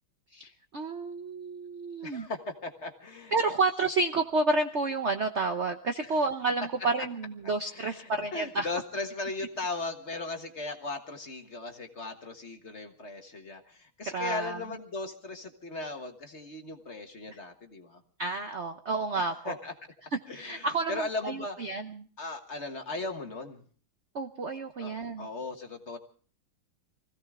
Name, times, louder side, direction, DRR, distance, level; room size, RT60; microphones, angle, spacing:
voice 1, 0.3-2.3 3.3-8.7 14.0-14.6 17.3-17.4 18.2-19.5 20.3-22.1 24.1-25.3, right 3 dB, 55° right, 7 dB, 0.8 m, -30 dB
voice 2, 2.0-3.3 6.0-6.1 7.7-18.0 19.4-19.7 20.3-21.6 22.2-23.6 24.8-26.0, left 3 dB, 35° left, 5 dB, 1.5 m, -37 dB
24.5 x 16.0 x 3.6 m, 0.43 s
omnidirectional pair, 2.2 m